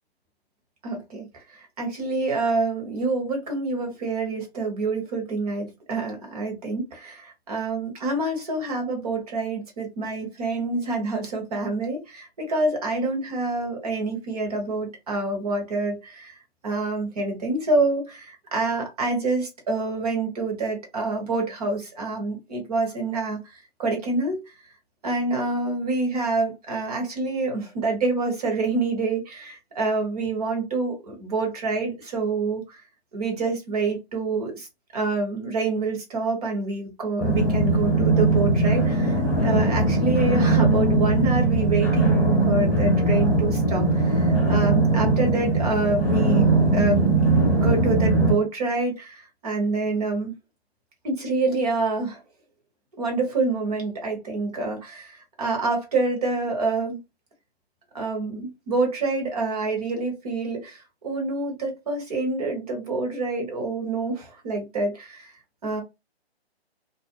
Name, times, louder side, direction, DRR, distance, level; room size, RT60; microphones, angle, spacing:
voice 1, 0.8-16.4 16.6-24.5 25.0-32.8 33.1-34.7 34.9-46.5 46.7-47.0 47.5-50.3 51.0-52.2 53.0-57.0 57.9-65.3 65.6-65.8, right 3 dB, 35° right, 1.1 m, -27 dB
sound 1, 37.2-48.3, right 2 dB, 10° left, 0.8 m, -20 dB
2.5 x 2.1 x 2.4 m
figure-of-eight pair, 140°, 33 cm